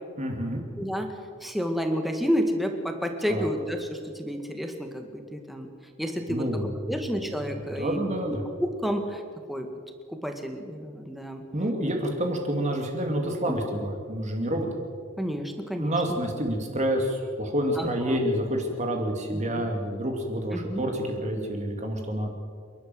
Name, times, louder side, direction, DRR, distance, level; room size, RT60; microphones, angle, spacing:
voice 1, 0.2-0.6 3.3-3.5 6.3-6.7 7.8-8.4 11.5-14.7 15.8-22.3, equal, 35° right, 2 dB, 2.6 m, -28 dB
voice 2, 0.8-1.1 1.4-5.7 6.0-6.5 6.9-9.2 9.5-9.7 10.1-11.4 15.2-15.9 17.8-18.2 19.3-19.7 20.5-20.8, equal, ahead, 4 dB, 2.0 m, -30 dB
28.5 x 12.0 x 7.9 m, 2.1 s
head